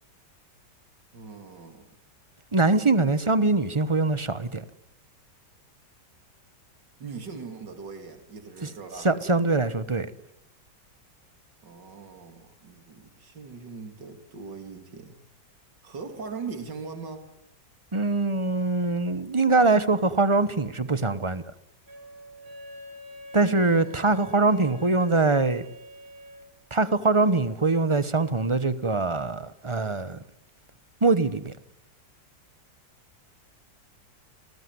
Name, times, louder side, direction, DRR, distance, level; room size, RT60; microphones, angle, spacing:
voice 1, 1.1-1.9 7.0-9.1 11.6-15.2 15.8-17.3 23.4-24.2, right 5 dB, 75° right, 3.5 m, -40 dB
voice 2, 2.5-4.6 8.6-8.7 9.0-10.1 17.9-21.4 23.3-25.7 26.7-30.2 31.0-31.5, right 3 dB, 20° right, 0.9 m, -23 dB
Wind instrument woodwind instrument, 21.9-26.5, equal, 55° right, 3.6 m, -45 dB
28.0 x 19.5 x 9.6 m
omnidirectional pair, 1.9 m